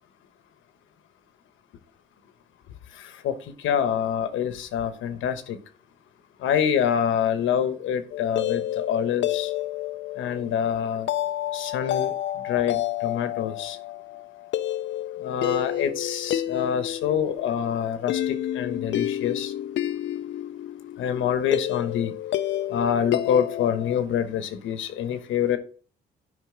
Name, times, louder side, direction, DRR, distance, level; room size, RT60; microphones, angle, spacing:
voice 1, 3.6-5.6 6.4-9.5 10.2-11.1 11.5-12.1 12.4-13.8 15.2-19.5 21.0-22.1 22.7-25.6, left 8 dB, 80° left, 9 dB, 1.1 m, -26 dB
sound 1, 8.1-24.0, left 12 dB, 65° left, 0.5 m, -30 dB
9.5 x 5.3 x 3.7 m, 0.42 s
cardioid pair, 90°, 20 cm